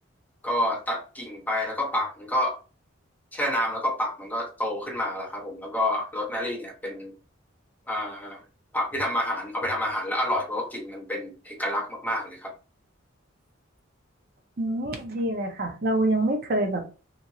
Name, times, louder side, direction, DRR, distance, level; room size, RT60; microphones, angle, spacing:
voice 1, 0.4-2.6 3.3-7.1 7.9-8.4 8.7-12.5, left 1 dB, 10° left, 0 dB, 0.6 m, -29 dB
voice 2, 14.6-16.8, right 1 dB, 45° right, 4 dB, 0.5 m, -26 dB
2.9 x 2.8 x 2.6 m, 0.34 s
head